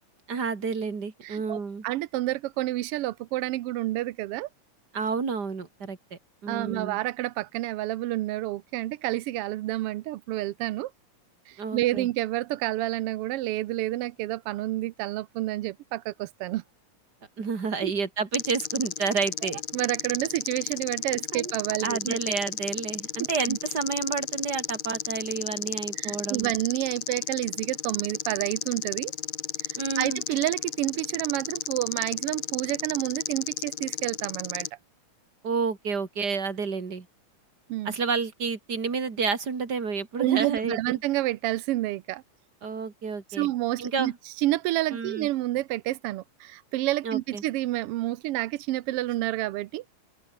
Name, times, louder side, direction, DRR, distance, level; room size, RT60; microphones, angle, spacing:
voice 1, 0.3-1.8 4.9-7.0 11.6-12.1 17.4-19.6 21.3-21.5 21.8-26.5 29.8-30.2 35.4-37.1 37.8-41.0 42.6-43.5 43.8-44.2 44.9-45.3 47.0-47.4, right 5 dB, 35° right, 3.1 m, -30 dB
voice 2, 1.2-4.5 6.5-10.9 11.5-16.6 17.8-17.9 19.4-22.2 23.2-23.6 25.9-29.1 29.6-34.7 37.7-37.9 40.2-42.2 43.3-49.8, right 16 dB, 80° right, 1.3 m, -29 dB
sound 1, 18.3-34.7, left 10 dB, 65° left, 2.8 m, -33 dB
open air
omnidirectional pair, 3.4 m